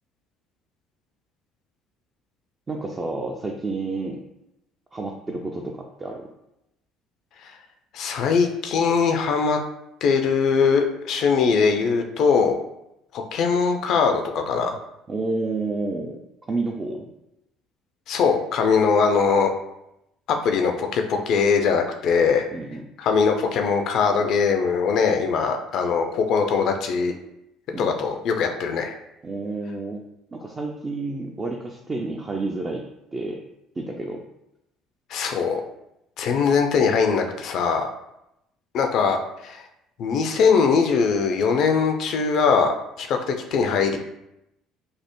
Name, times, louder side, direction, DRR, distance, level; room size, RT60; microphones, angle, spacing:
voice 1, 2.7-4.2 4.9-6.3 15.1-16.2 16.5-17.1 22.5-22.9 27.7-27.9 29.2-30.0 30.3-32.8 33.1-33.4 33.8-34.2, right 3 dB, 30° right, 1 dB, 0.3 m, -30 dB
voice 2, 7.9-9.6 10.0-12.6 13.1-14.8 18.1-19.5 20.3-22.4 23.0-27.1 27.8-29.0 35.1-35.6 36.2-37.9 38.7-39.2 39.4-39.6 40.0-44.0, left 5 dB, 60° left, 5 dB, 0.3 m, -21 dB
3.2 x 2.0 x 2.9 m, 0.85 s
hypercardioid pair, 60°, 0 cm